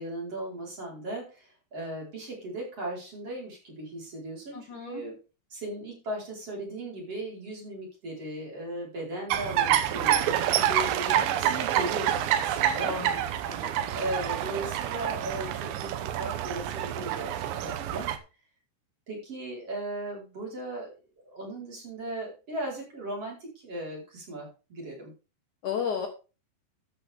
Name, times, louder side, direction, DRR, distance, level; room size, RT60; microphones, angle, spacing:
voice 1, 0.0-5.1 5.5-12.9 13.9-18.1 19.1-21.0 21.3-25.1, right 1 dB, 30° right, -2 dB, 5.1 m, -37 dB
voice 2, 4.5-5.0 12.8-13.7 25.6-26.1, left 7 dB, 75° left, 3 dB, 1.8 m, -34 dB
sound 1, 9.3-18.2, right 11 dB, 75° right, 2.8 m, -27 dB
13.5 x 8.6 x 3.6 m, 0.32 s
omnidirectional pair, 5.9 m